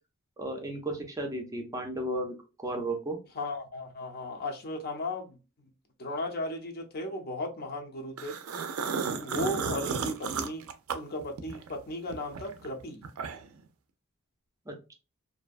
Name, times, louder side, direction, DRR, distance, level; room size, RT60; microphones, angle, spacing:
voice 1, 0.4-3.2 14.7-14.9, right 1 dB, 15° right, 0.5 m, -34 dB
voice 2, 3.4-5.4 6.0-8.4 9.2-10.6 10.9-13.0, left 1 dB, 45° left, 0.6 m, -36 dB
sound 1, 8.2-11.7 12.1-13.6, right 5 dB, 70° right, 0.4 m, -33 dB
2.6 x 2.2 x 2.3 m
head